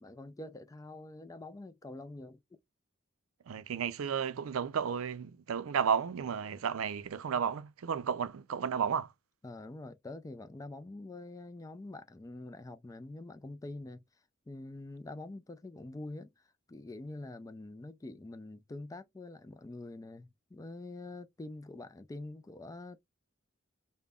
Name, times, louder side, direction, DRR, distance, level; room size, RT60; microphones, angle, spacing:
voice 1, 0.0-2.6 9.4-14.0 14.5-23.0, left 2 dB, 15° left, 0.3 m, -45 dB
voice 2, 3.5-9.1, right 7 dB, 85° right, 0.4 m, -33 dB
5.2 x 2.1 x 2.3 m
head